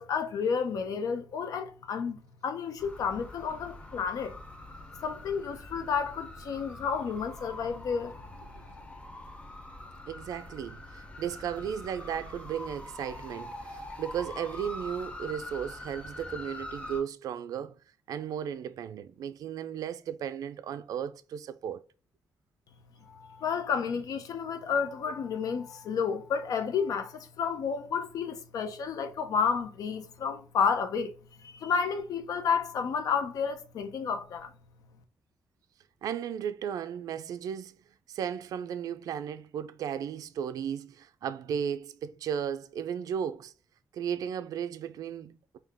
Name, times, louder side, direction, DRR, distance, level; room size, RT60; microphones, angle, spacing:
voice 1, 0.0-4.4 5.0-8.2 23.1-31.1 31.4-34.5, left 6 dB, 80° left, 0.6 m, -31 dB
sound 1, 2.8-17.0, left 2 dB, 20° left, 0.7 m, -44 dB
voice 2, 10.1-17.8 18.1-21.8 36.0-43.5 43.9-45.6, right 8 dB, 85° right, 0.3 m, -35 dB
3.8 x 2.7 x 3.4 m
cardioid pair, 120°, 6 cm